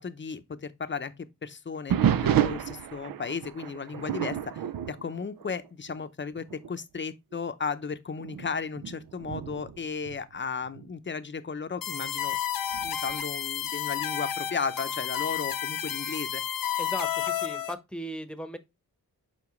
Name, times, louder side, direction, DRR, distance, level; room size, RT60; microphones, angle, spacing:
voice 1, 0.0-12.4 12.8-16.4, left 5 dB, 30° left, 0.7 m, -35 dB
sound 1, 1.9-6.0 6.4-6.7 7.3-7.4 8.2-10.9 12.7-13.2, right 10 dB, 75° right, 0.5 m, -30 dB
sound 2, 11.8-17.7, left 9 dB, 70° left, 0.7 m, -31 dB
voice 2, 16.8-18.6, equal, 5° left, 1.0 m, -37 dB
7.1 x 4.5 x 3.1 m
cardioid pair, 65°, 36 cm